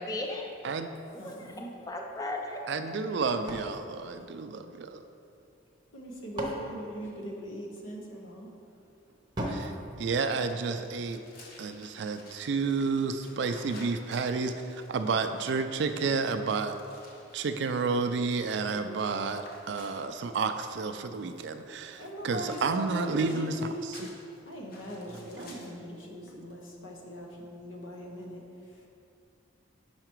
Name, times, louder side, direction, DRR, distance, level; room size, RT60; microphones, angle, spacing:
voice 1, 0.0-2.6, left 2 dB, 15° left, 1 dB, 0.4 m, -37 dB
voice 2, 1.2-1.7 5.9-8.5 9.7-9.9 17.2-17.4 21.3-23.8 24.2-28.9, right 1 dB, 75° left, 0 dB, 0.9 m, -41 dB
voice 3, 2.7-5.0 9.5-11.2 11.6-16.8 17.3-23.7 24.0-24.1, right 4 dB, 60° right, 8 dB, 0.3 m, -31 dB
sound 1, 3.5-5.0 5.9-7.8 9.3-11.0, equal, 20° right, 0.7 m, -39 dB
sound 2, 10.5-20.7 22.5-25.9, left 1 dB, 45° left, 0.8 m, -54 dB
5.7 x 4.8 x 4.5 m, 2.6 s
head